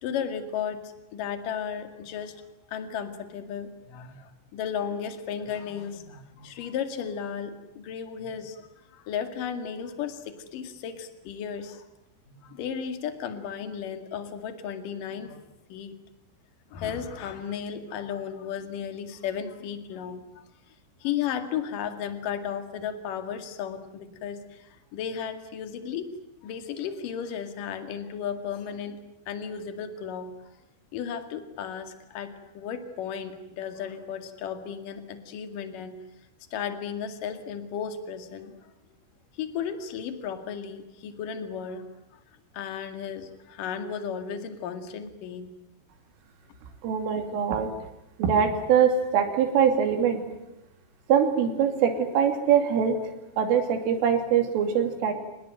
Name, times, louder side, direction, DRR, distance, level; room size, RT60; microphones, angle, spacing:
voice 1, 0.0-11.8 12.3-15.4 15.7-16.0 16.7-20.4 21.0-26.1 26.4-29.0 29.3-30.3 30.9-36.0 36.5-38.7 39.3-42.2 42.5-45.5, left 8 dB, 50° left, 8 dB, 3.1 m, -34 dB
voice 2, 46.8-47.7 48.2-50.2 51.1-53.1 53.4-55.1, right 7 dB, 90° right, 5 dB, 5.2 m, -23 dB
26.0 x 20.0 x 9.1 m, 0.91 s
omnidirectional pair, 5.6 m